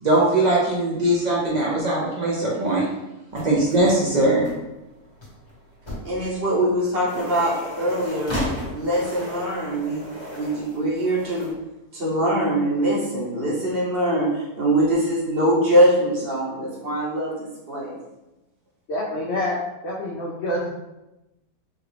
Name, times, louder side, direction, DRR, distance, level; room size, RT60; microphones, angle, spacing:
voice 1, 0.0-2.8 3.3-4.5, right 1 dB, 90° right, -5 dB, 0.3 m, -20 dB
sound 1, 3.3-11.5, equal, 20° left, 0.9 m, -35 dB
voice 2, 6.0-8.4 8.7-10.1 10.3-11.5 11.9-17.9, right 1 dB, 45° right, -5 dB, 0.9 m, -23 dB
voice 3, 18.9-19.6 19.8-20.7, left 1 dB, 70° left, -4 dB, 0.6 m, -26 dB
3.6 x 2.3 x 3.2 m, 0.98 s
omnidirectional pair, 1.6 m